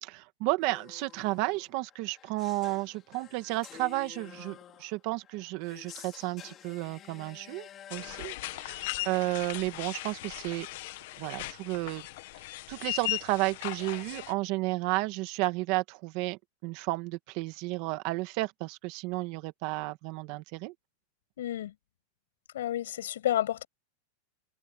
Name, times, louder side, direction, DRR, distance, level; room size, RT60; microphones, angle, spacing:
voice 1, 0.0-10.7 11.2-12.1 12.7-20.7, right 21 dB, 40° right, 1.6 m, -32 dB
sound 1, 0.6-8.3, left 10 dB, 20° left, 4.6 m, -50 dB
sound 2, 7.9-14.3, left 20 dB, 50° left, 1.4 m, -38 dB
voice 2, 21.4-21.7 22.5-23.7, left 12 dB, 85° left, 7.3 m, -30 dB
supercardioid pair, 170°, 0 cm